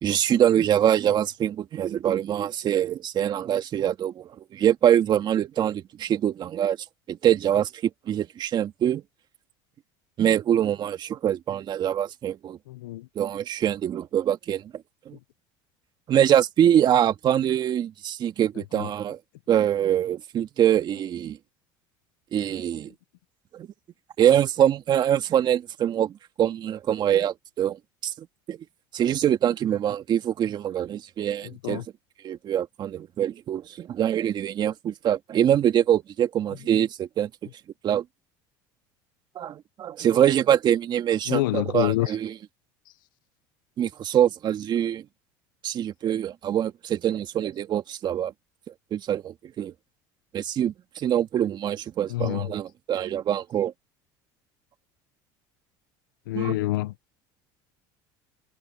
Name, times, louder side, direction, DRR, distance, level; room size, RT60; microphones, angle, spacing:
voice 1, 0.0-6.8 7.1-9.0 10.2-12.6 13.2-14.7 15.1-15.2 16.1-19.2 19.5-21.4 22.3-22.9 23.5-23.7 24.2-26.1 26.4-28.6 28.9-31.8 32.2-37.5 37.8-38.0 39.4-42.3 43.8-45.0 45.6-48.3 48.9-49.7 50.3-53.7 56.3-56.6, right 10 dB, 45° right, 2.2 m, -24 dB
voice 2, 12.7-13.1 18.7-18.9 31.4-31.8 41.3-42.1 52.1-52.5 56.3-56.9, left 17 dB, 90° left, 0.7 m, -27 dB
supercardioid pair, 100°, 11 cm